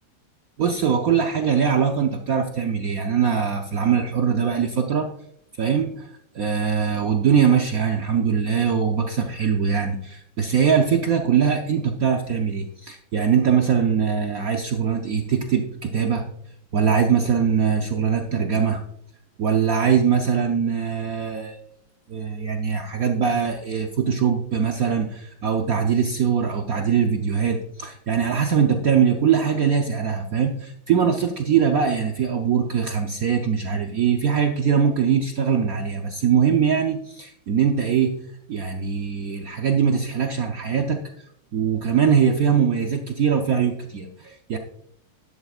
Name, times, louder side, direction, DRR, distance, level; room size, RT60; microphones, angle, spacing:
voice 1, 0.6-5.1 5.6-6.1 6.3-16.2 16.7-18.8 19.4-21.6 22.1-38.1 38.5-41.0 41.5-44.6, right 7 dB, 60° right, 3 dB, 1.0 m, -22 dB
12.0 x 11.0 x 2.4 m, 0.72 s
omnidirectional pair, 2.1 m